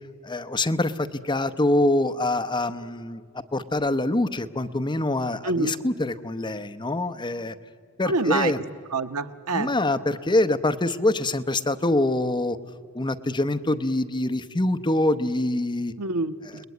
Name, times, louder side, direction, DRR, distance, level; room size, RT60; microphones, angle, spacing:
voice 1, 0.2-3.2 3.5-7.5 8.0-8.6 9.5-12.6 12.9-15.9 16.4-16.6, left 2 dB, 20° left, 9 dB, 0.8 m, -25 dB
voice 2, 5.4-5.8 8.1-8.5 8.9-9.7 16.0-16.4, right 3 dB, 80° right, 9 dB, 1.0 m, -26 dB
30.0 x 20.0 x 9.5 m, 2.1 s
head